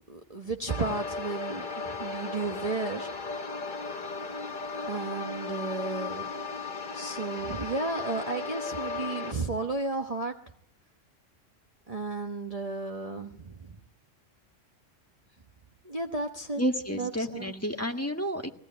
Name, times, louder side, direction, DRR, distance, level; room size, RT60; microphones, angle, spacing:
voice 1, 0.1-3.1 4.9-6.3 6.9-10.3 11.9-13.5 15.8-16.6 16.9-17.5, right 3 dB, 30° right, 2 dB, 1.2 m, -33 dB
sound 1, 0.7-9.3, left 4 dB, 40° left, 1.2 m, -36 dB
voice 2, 16.6-18.5, equal, 10° left, 3 dB, 1.8 m, -30 dB
21.0 x 17.0 x 9.5 m, 0.72 s
omnidirectional pair, 1.3 m